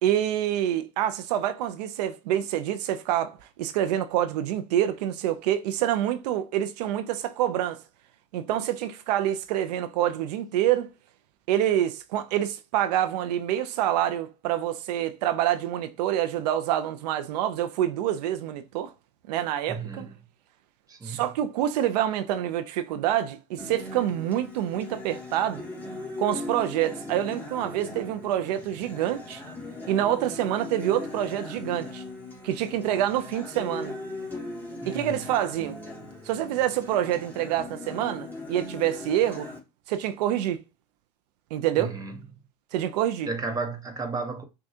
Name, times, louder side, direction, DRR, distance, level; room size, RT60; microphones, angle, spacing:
voice 1, 0.0-7.8 8.3-10.9 11.5-18.9 19.3-20.1 21.0-25.6 26.2-29.4 29.9-32.0 32.4-33.9 34.9-35.8 36.2-39.5 39.9-40.6 41.5-42.0 42.7-43.3, right 11 dB, 80° right, 0.5 m, -27 dB
voice 2, 19.7-20.1 20.9-21.2 34.8-35.2 41.8-42.2 43.3-44.4, right 4 dB, 15° right, 0.9 m, -33 dB
Acoustic guitar, 23.6-39.6, left 2 dB, 10° left, 1.9 m, -39 dB
6.1 x 2.3 x 2.7 m
supercardioid pair, 105°, 21 cm